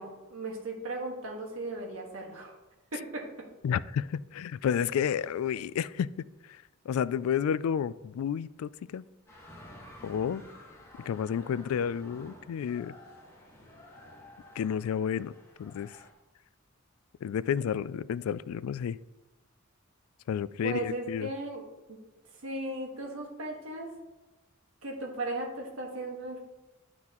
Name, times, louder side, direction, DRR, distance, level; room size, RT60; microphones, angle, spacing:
voice 1, 0.0-2.5 2.9-3.3 20.6-21.6 21.9-22.0 22.4-23.9 24.8-26.4, right 2 dB, 80° right, 1.6 m, -36 dB
voice 2, 3.6-9.0 10.0-10.4 11.0-12.9 14.6-15.3 15.6-16.1 17.2-19.0 20.3-21.3, left 8 dB, 90° left, 0.3 m, -31 dB
sound 1, 9.3-16.1, left 1 dB, 15° left, 1.6 m, -52 dB
11.5 x 6.0 x 3.0 m
head